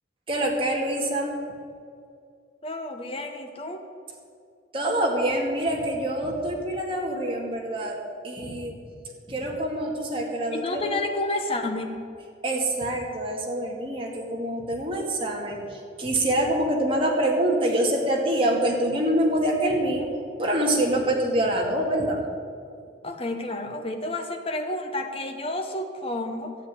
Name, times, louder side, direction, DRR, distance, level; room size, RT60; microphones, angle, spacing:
voice 1, 0.3-1.4 4.7-8.0 8.2-8.8 9.3-10.9 12.4-20.1 20.4-22.2, right 1 dB, 30° right, -1 dB, 2.3 m, -25 dB
voice 2, 2.6-3.8 10.5-12.0 23.0-26.5, left 2 dB, 30° left, 4 dB, 1.1 m, -30 dB
12.5 x 8.2 x 9.7 m, 2.4 s
head